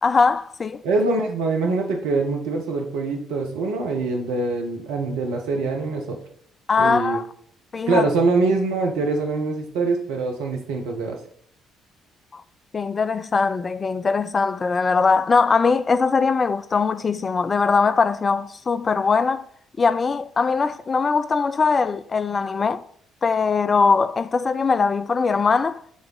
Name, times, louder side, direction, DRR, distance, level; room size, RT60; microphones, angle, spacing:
voice 1, 0.0-0.8 6.7-7.2 7.7-8.0 12.3-12.4 12.7-19.5 19.8-22.8 23.2-25.8, left 4 dB, 30° left, 0.3 m, -21 dB
voice 2, 0.8-6.2 6.8-7.2 7.9-11.2, right 3 dB, 65° right, 1.0 m, -24 dB
6.4 x 3.5 x 5.4 m
figure-of-eight pair, 45°, 0 cm